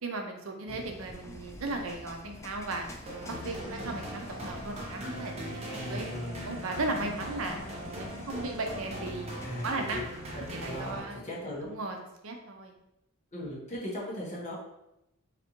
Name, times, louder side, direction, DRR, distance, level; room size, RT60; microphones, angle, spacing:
voice 1, 0.0-2.9 3.2-6.0 6.4-7.6 7.9-9.3 9.6-10.0 10.3-11.2 11.6-12.8, right 2 dB, 65° right, 3 dB, 0.6 m, -36 dB
sound 1, 0.7-11.0, left 1 dB, 15° left, 0.3 m, -48 dB
sound 2, 3.1-11.4, right 1 dB, 30° right, 0.7 m, -41 dB
sound 3, 3.4-8.8, left 2 dB, 75° left, 0.7 m, -46 dB
voice 2, 5.7-6.4 8.4-8.5 9.4-9.7 10.3-11.7 13.3-14.5, equal, 35° left, -5 dB, 1.2 m, -38 dB
4.0 x 3.3 x 2.9 m, 0.85 s
head